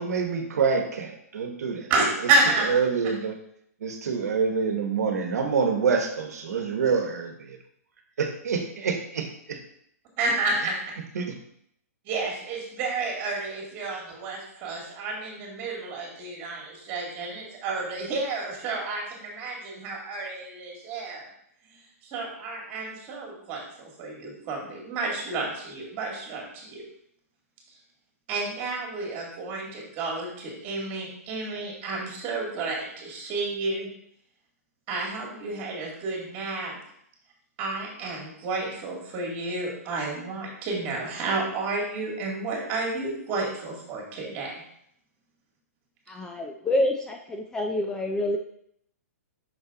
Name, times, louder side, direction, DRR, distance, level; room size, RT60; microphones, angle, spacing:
voice 1, 0.0-1.9 2.7-3.3 3.8-7.6 8.2-9.6 11.1-11.3, right 5 dB, 75° right, 4 dB, 1.1 m, -26 dB
voice 2, 1.9-2.7 10.2-10.8 12.0-21.3 22.0-26.8 28.3-33.9 34.9-36.8 37.6-44.5, right 3 dB, 25° right, -2 dB, 2.4 m, -30 dB
voice 3, 46.1-48.4, left 1 dB, 10° left, 2 dB, 0.3 m, -27 dB
5.8 x 5.5 x 3.8 m, 0.71 s
hypercardioid pair, 155°, 9 cm